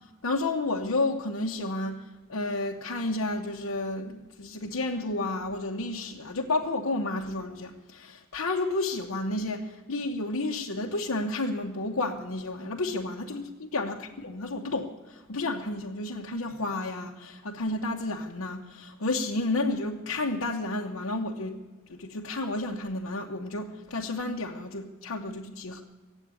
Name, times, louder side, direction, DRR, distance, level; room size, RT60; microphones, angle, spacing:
voice 1, 0.2-2.0 2.3-21.6 21.9-25.8, left 2 dB, 85° left, -1 dB, 1.0 m, -31 dB
17.0 x 8.2 x 9.5 m, 1.4 s
head